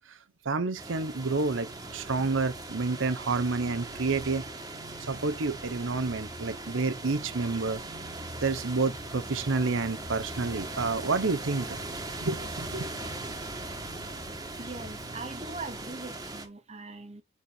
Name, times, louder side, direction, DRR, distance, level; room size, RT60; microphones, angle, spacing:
voice 1, 0.4-4.5 5.0-7.8 8.4-11.8 12.2-12.9, right 3 dB, 85° right, 0.8 m, -29 dB
sound 1, 0.8-16.5, right 2 dB, 20° right, 1.4 m, -40 dB
sound 2, 1.3-16.0, right 1 dB, 65° right, 1.7 m, -49 dB
sound 3, 8.8-15.0, left 1 dB, 60° left, 1.9 m, -48 dB
voice 2, 14.6-17.2, right 3 dB, 35° right, 1.1 m, -41 dB
7.1 x 4.4 x 3.5 m
head